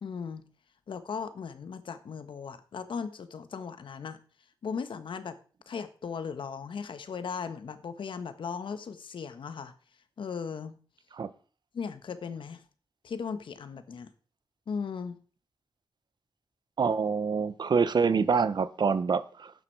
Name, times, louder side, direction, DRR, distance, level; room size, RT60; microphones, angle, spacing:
voice 1, 0.0-0.4 0.9-4.2 4.6-5.4 5.7-9.7 10.2-10.8 11.7-12.6 13.0-14.1 14.7-15.2, left 6 dB, 80° left, 1.4 m, -37 dB
voice 2, 16.8-19.5, right 5 dB, 60° right, 0.9 m, -26 dB
12.0 x 9.7 x 4.7 m
wide cardioid pair, 95°, 8 cm